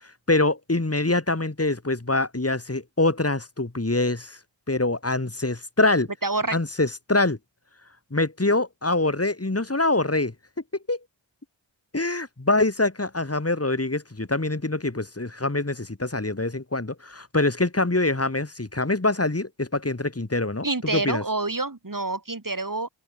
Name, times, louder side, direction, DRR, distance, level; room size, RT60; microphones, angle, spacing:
voice 1, 0.0-4.4 4.7-6.1 6.5-7.4 8.1-10.3 10.9-11.0 11.9-21.2, left 2 dB, 30° left, 5.4 m, -24 dB
voice 2, 6.2-6.6 20.6-22.9, right 3 dB, 45° right, 7.0 m, -27 dB
open air
wide cardioid pair, 60°, 47 cm